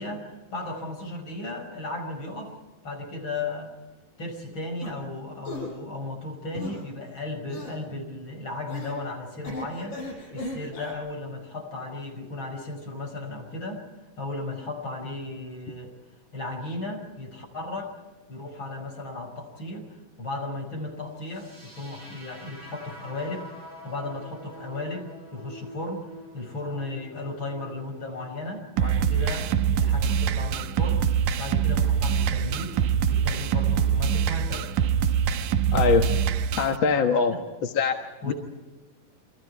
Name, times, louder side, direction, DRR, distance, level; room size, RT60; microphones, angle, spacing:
voice 1, 0.0-2.6 2.8-3.7 4.2-10.0 10.3-13.8 14.2-15.9 16.3-17.9 18.3-23.5 23.8-31.1 31.4-32.8 33.1-34.7 37.3-37.4 38.2-38.3, left 2 dB, 35° left, 3 dB, 6.1 m, -35 dB
sound 1, 4.8-4.9 5.4-5.7 6.6-6.9 7.5-7.8 8.7-9.0 9.4-10.9, left 1 dB, 70° left, 8.2 m, -37 dB
sound 2, 21.2-29.2, right 1 dB, 25° right, 8.4 m, -47 dB
sound 3, 28.8-36.8, right 7 dB, 75° right, 2.3 m, -24 dB
voice 2, 35.7-36.2 36.6-37.3 37.7-38.0 38.3-38.4, left 5 dB, 50° left, 3 dB, 1.6 m, -22 dB
29.5 x 25.5 x 4.7 m, 1.2 s
omnidirectional pair, 3.9 m